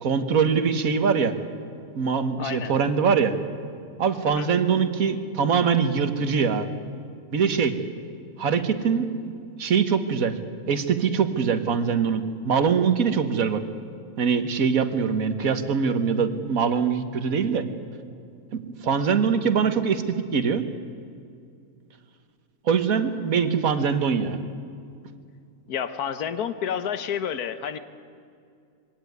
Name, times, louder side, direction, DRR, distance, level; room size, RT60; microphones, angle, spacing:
voice 1, 0.0-1.3 2.0-3.3 4.0-6.7 7.3-7.8 8.4-9.1 9.6-10.4 10.7-13.6 14.2-17.6 18.5-20.0 20.3-20.6 22.7-24.4, right 6 dB, 65° right, 9 dB, 1.7 m, -23 dB
voice 2, 2.4-2.7 4.3-4.5 25.7-27.8, left 8 dB, 85° left, 11 dB, 1.5 m, -29 dB
23.0 x 17.5 x 9.5 m, 2.4 s
omnidirectional pair, 1.6 m